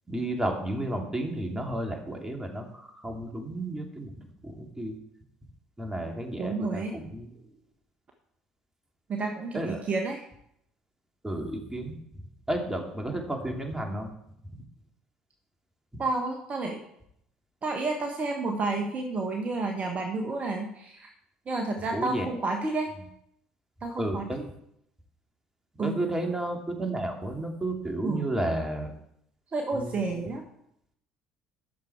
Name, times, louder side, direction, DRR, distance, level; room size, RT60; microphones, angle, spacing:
voice 1, 0.1-4.1 4.4-5.0 5.8-7.3 9.5-9.8 11.2-11.9 12.5-14.1 15.9-16.0 21.9-22.3 24.0-24.4 25.8-28.9 29.7-30.3, right 1 dB, 15° right, 2 dB, 2.7 m, -32 dB
voice 2, 6.4-6.9 9.1-10.2 16.0-16.8 17.6-21.1 21.5-22.9 23.8-24.3 25.8-26.0 28.0-28.3 29.5-30.4, right 3 dB, 35° right, 3 dB, 1.5 m, -30 dB
12.0 x 7.0 x 4.7 m, 0.75 s
figure-of-eight pair, 55°, 4 cm